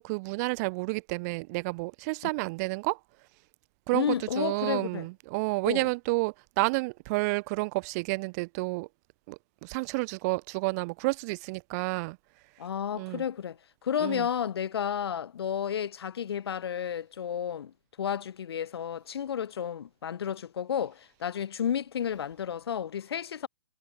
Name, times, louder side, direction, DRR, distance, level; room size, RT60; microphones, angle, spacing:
voice 1, 0.0-3.0 3.9-8.9 9.3-12.2 12.9-13.2 14.0-14.3, right 26 dB, 35° right, 4.4 m, -30 dB
voice 2, 3.9-5.1 5.7-5.9 12.6-23.5, left 8 dB, 60° left, 5.3 m, -32 dB
figure-of-eight pair, 125°, 15 cm